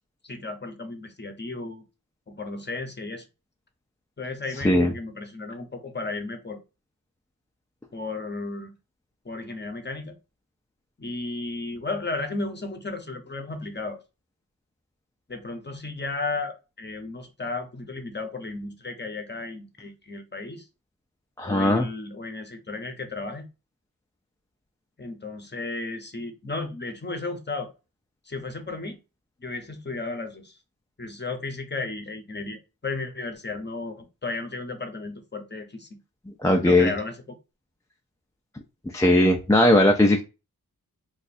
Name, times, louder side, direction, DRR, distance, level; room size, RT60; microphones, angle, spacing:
voice 1, 0.2-1.8 2.3-3.2 4.2-6.6 7.9-8.7 9.2-10.2 11.0-14.0 15.3-20.7 21.4-23.4 25.0-27.7 28.3-29.0 29.4-30.6 31.0-35.9 36.6-37.2, left 3 dB, 30° left, 0.8 m, -34 dB
voice 2, 21.4-21.9 36.4-36.9 38.9-40.2, left 1 dB, 10° left, 0.4 m, -18 dB
2.6 x 2.4 x 4.1 m
wide cardioid pair, 75°, 36 cm